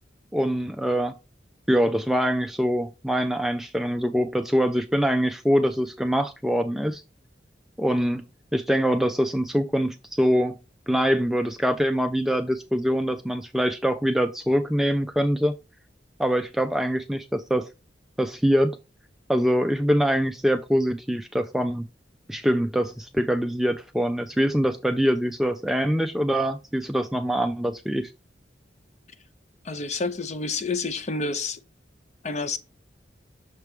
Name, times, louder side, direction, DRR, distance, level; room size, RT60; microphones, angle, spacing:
voice 1, 0.3-1.1 1.7-7.0 7.8-8.2 8.5-10.6 10.9-15.5 16.2-17.7 18.2-18.8 19.3-21.9 22.3-28.1, equal, ahead, 0.3 m, -24 dB
voice 2, 29.6-31.6 32.2-32.6, left 3 dB, 40° left, 0.6 m, -29 dB
6.6 x 4.6 x 3.5 m
head